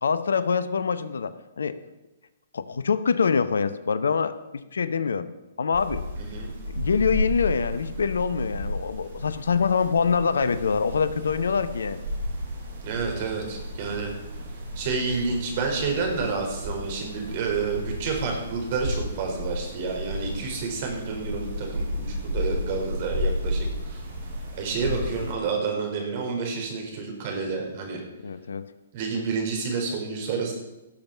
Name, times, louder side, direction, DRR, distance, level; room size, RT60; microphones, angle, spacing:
voice 1, 0.0-1.8 2.5-4.4 4.7-5.3 5.6-6.0 6.7-12.0 28.2-28.6, left 5 dB, 70° left, 14 dB, 0.8 m, -25 dB
sound 1, 5.7-25.3, equal, 65° right, 4.9 m, -33 dB
voice 2, 6.2-6.5 12.8-14.1 14.7-24.0 24.6-28.0 28.9-30.5, right 4 dB, 45° right, 1 dB, 4.6 m, -29 dB
17.0 x 7.3 x 6.0 m, 1.0 s
figure-of-eight pair, 120°, 0 cm